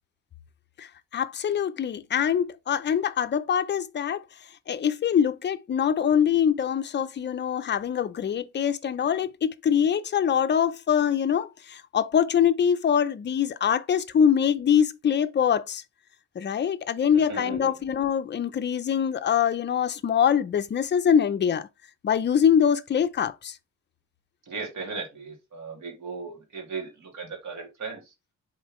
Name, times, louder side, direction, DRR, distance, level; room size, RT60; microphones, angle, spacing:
voice 1, 0.8-4.2 4.7-15.8 16.4-21.7 22.0-23.6, left 8 dB, 35° left, 0.5 m, -24 dB
voice 2, 17.1-17.7 24.5-28.1, right 4 dB, 65° right, 2.7 m, -37 dB
7.1 x 4.4 x 3.1 m
wide cardioid pair, 160°, 31 cm